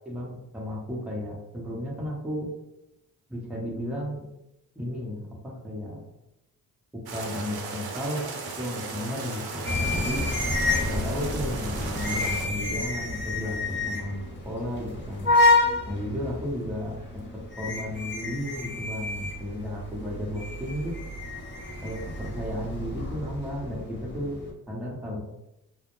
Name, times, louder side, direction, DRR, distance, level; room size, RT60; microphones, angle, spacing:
voice 1, 0.0-2.5 3.3-4.3 4.7-6.0 7.1-8.3 8.6-10.2 10.8-15.3 15.9-17.2 17.6-20.9 21.8-24.4 24.7-25.2, equal, 5° right, -4 dB, 0.8 m, -33 dB
sound 1, 7.1-12.5, right 4 dB, 65° right, 0.6 m, -36 dB
sound 2, 9.6-24.5, left 2 dB, 25° left, 0.8 m, -29 dB
2.1 x 2.1 x 3.0 m, 0.87 s
supercardioid pair, 50°, 41 cm